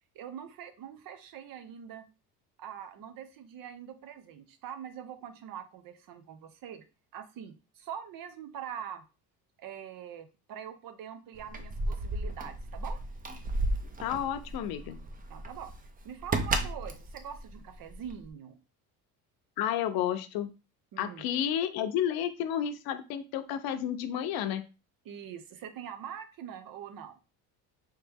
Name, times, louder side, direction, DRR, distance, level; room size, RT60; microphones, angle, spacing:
voice 1, 0.1-2.1 2.6-6.8 7.1-9.0 9.6-13.0 15.3-15.7 16.0-18.6 20.9-21.3 25.0-27.2, right 9 dB, 60° right, 10 dB, 0.8 m, -44 dB
Keys jangling, 11.3-18.3, right 2 dB, 20° right, 0.6 m, -34 dB
voice 2, 14.0-15.0 19.6-20.5 21.0-24.6, left 10 dB, 70° left, 8 dB, 0.7 m, -31 dB
3.2 x 3.1 x 3.5 m, 0.32 s
cardioid pair, 95°, 38 cm